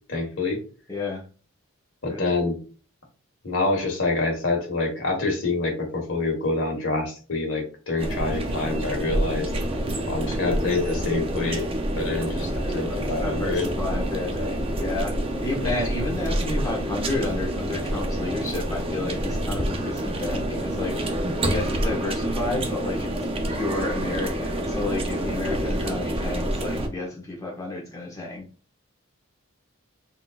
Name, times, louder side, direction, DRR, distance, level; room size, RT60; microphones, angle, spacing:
voice 1, 0.1-0.6 2.0-2.6 3.4-9.5 10.1-11.7 12.0-13.7 15.6-15.7, left 3 dB, 60° left, 0 dB, 1.5 m, -26 dB
voice 2, 0.9-1.2 2.1-2.2 9.8-10.5 12.7-21.0 21.5-23.1 23.5-28.5, left 2 dB, 15° left, -2 dB, 1.2 m, -31 dB
sound 1, 8.0-26.9, right 1 dB, 25° right, 0.5 m, -27 dB
3.8 x 3.7 x 2.4 m, 0.36 s
head